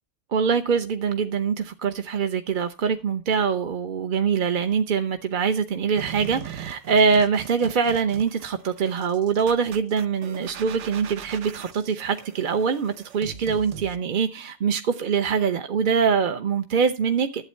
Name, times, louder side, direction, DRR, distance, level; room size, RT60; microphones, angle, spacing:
voice 1, 0.3-17.4, right 6 dB, 55° right, 0.7 m, -24 dB
sound 1, 6.0-14.0, right 8 dB, 85° right, 1.1 m, -40 dB
11.5 x 8.0 x 4.3 m
omnidirectional pair, 1.2 m